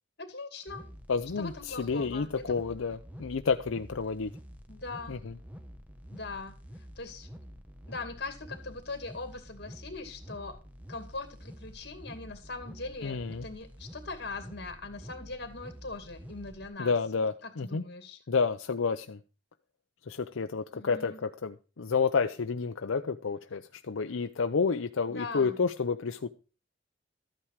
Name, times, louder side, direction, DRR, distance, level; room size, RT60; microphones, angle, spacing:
voice 1, 0.2-0.9 1.4-2.3 4.7-5.2 6.1-6.6 7.0-7.3 7.9-10.6 10.9-16.9 17.4-18.2 20.7-21.2 25.1-25.6, left 3 dB, 55° left, 7 dB, 2.4 m, -41 dB
sound 1, 0.7-16.7, equal, 10° right, 1.0 m, -48 dB
voice 2, 1.1-4.3 5.1-5.4 13.0-13.5 16.8-17.8 18.3-19.2 20.1-26.3, left 5 dB, 85° left, 8 dB, 0.6 m, -30 dB
13.5 x 9.0 x 4.7 m, 0.34 s
head